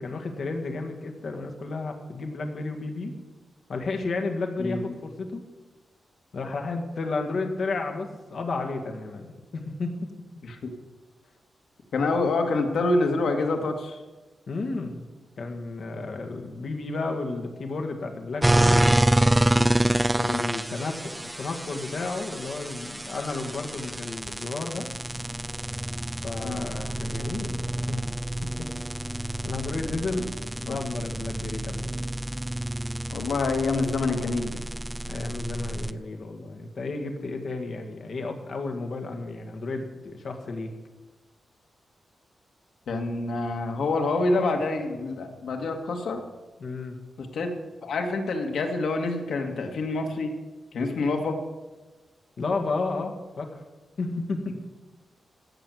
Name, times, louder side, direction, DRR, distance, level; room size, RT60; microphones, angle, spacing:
voice 1, 0.0-3.2 3.7-5.4 6.3-9.2 9.5-10.1 14.5-15.1 15.4-19.1 20.2-24.9 26.2-28.0 28.6-28.7 29.4-32.0 35.1-40.7 46.6-47.0 52.4-53.6 54.0-54.6, left 3 dB, 50° left, 4 dB, 1.8 m, -32 dB
voice 2, 11.9-14.0 26.4-26.7 30.7-30.8 33.1-34.6 42.9-46.3 47.2-47.5 47.8-50.3 50.7-51.4, left 3 dB, 80° left, 3 dB, 1.9 m, -26 dB
sound 1, 18.4-35.9, right 1 dB, 5° right, 0.3 m, -27 dB
15.0 x 6.6 x 7.8 m, 1.2 s
wide cardioid pair, 165°, 0 cm